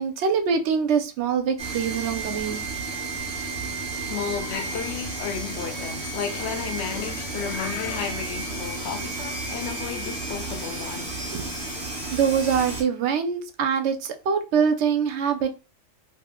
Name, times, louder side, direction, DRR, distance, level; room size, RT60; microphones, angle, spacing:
voice 1, 0.0-2.6 11.3-11.5 12.1-15.5, right 6 dB, 65° right, 0.8 m, -24 dB
sound 1, 1.6-12.8, right 3 dB, 20° right, 1.0 m, -32 dB
voice 2, 3.9-11.3, left 7 dB, 65° left, 0.8 m, -33 dB
2.6 x 2.1 x 3.6 m
omnidirectional pair, 1.4 m